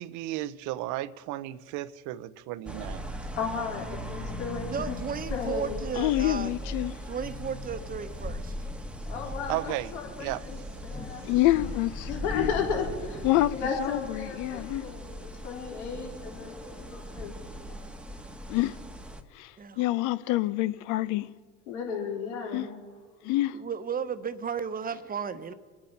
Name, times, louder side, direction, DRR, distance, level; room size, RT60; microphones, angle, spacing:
voice 1, 0.0-3.0 9.5-9.9 10.2-10.4, right 15 dB, 55° right, 0.8 m, -34 dB
sound 1, 2.7-19.2, equal, 5° right, 1.3 m, -38 dB
voice 2, 3.4-5.0 5.3-5.9 9.1-11.3 12.1-13.2 13.5-15.1 15.4-17.3 17.7-17.8 21.7-22.8, left 5 dB, 80° left, 3.9 m, -34 dB
voice 3, 4.7-6.6 7.0-8.7 19.6-19.8 23.5-25.5, right 7 dB, 25° right, 1.1 m, -34 dB
voice 4, 6.0-6.9 11.3-12.1 12.3-12.5 13.2-13.5 13.8-14.8 18.5-18.8 19.3-21.3 22.5-22.7 23.2-23.6, left 16 dB, 60° left, 0.8 m, -26 dB
25.0 x 8.8 x 5.9 m
hypercardioid pair, 90°, 35 cm